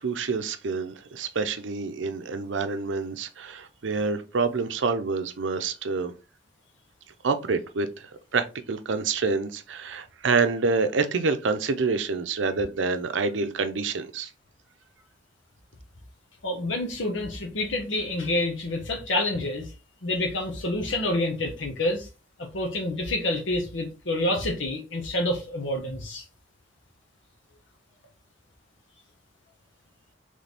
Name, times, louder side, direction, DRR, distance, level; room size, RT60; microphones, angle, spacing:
voice 1, 0.0-6.1 7.2-14.3, right 4 dB, 75° right, 0.6 m, -27 dB
voice 2, 16.4-19.7 20.0-22.1 22.4-26.2, left 1 dB, 75° left, 0.9 m, -28 dB
4.1 x 3.3 x 3.4 m
head